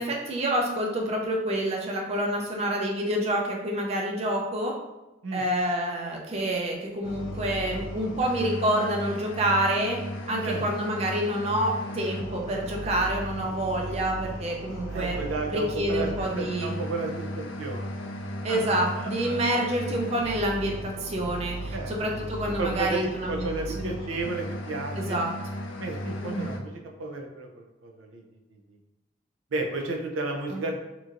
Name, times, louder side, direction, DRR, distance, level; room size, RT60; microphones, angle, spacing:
voice 1, 0.0-4.7 5.3-10.0 10.3-15.2 15.5-16.7 18.4-23.5 23.8-23.9 25.0-25.3 26.2-26.5 30.5-30.6, right 1 dB, 30° right, 0 dB, 0.4 m, -28 dB
sound 1, 7.0-26.6, equal, 80° left, 0.4 m, -36 dB
voice 2, 14.9-16.1 16.4-17.9 18.4-19.4 21.7-21.9 22.6-25.2 25.8-28.2 29.5-30.7, right 3 dB, 85° right, 2 dB, 0.5 m, -33 dB
2.9 x 2.5 x 2.5 m, 1.0 s
head